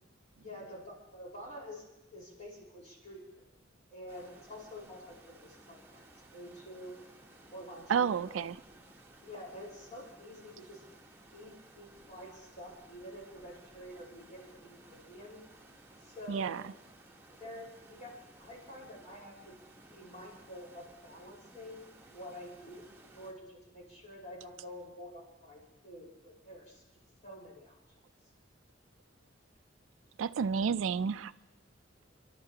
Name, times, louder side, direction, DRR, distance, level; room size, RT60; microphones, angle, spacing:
voice 1, 0.4-1.8 2.1-3.5 3.9-7.0 7.5-8.4 9.2-10.8 11.3-15.4 16.0-16.6 17.3-18.1 18.4-19.5 19.9-22.8 23.1-26.8 27.2-27.8, equal, 40° left, -3 dB, 4.7 m, -48 dB
sound 1, 4.1-23.3, right 2 dB, 10° right, 1.1 m, -58 dB
voice 2, 7.9-8.6 16.3-16.6 30.2-31.3, right 6 dB, 85° right, 15 dB, 0.4 m, -30 dB
29.5 x 12.0 x 2.9 m, 0.99 s
head